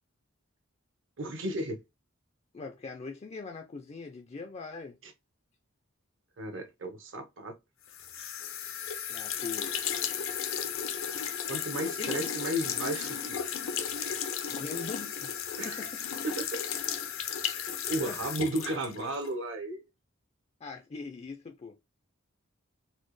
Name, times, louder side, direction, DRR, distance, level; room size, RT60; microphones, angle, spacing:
voice 1, 1.2-1.8 6.4-7.5 8.2-8.3 11.5-13.4 15.6-15.8 16.2-16.4 17.9-19.8, right 1 dB, 65° right, 0.8 m, -34 dB
voice 2, 2.5-5.0 9.1-9.9 12.0-12.1 14.5-15.4 15.6-16.1 18.1-18.2 20.6-21.8, left 4 dB, 30° left, 0.4 m, -41 dB
sound 1, 7.9-19.3, left 8 dB, 75° left, 0.6 m, -34 dB
4.1 x 2.0 x 3.0 m
head